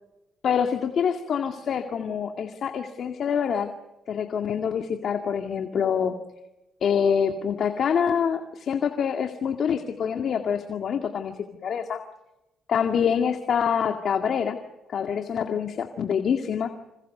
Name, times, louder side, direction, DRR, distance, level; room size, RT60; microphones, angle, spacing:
voice 1, 0.4-3.7 4.1-6.2 6.8-11.3 11.6-12.0 12.7-14.6 14.9-16.7, left 7 dB, 55° left, 5 dB, 2.1 m, -26 dB
28.5 x 26.5 x 6.8 m, 0.97 s
cardioid pair, 110°, 0 cm